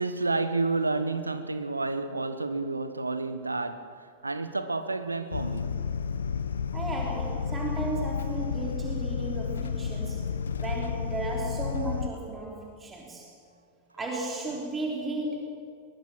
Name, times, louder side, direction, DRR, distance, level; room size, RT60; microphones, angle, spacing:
voice 1, 0.0-5.8, right 3 dB, 80° right, 1.2 m, -30 dB
sound 1, 5.3-12.1, left 6 dB, 70° left, 1.0 m, -31 dB
voice 2, 6.7-10.3 10.6-13.3 13.9-15.5, right 2 dB, 15° right, 3.5 m, -34 dB
22.5 x 20.5 x 6.1 m
figure-of-eight pair, 90°, 0 cm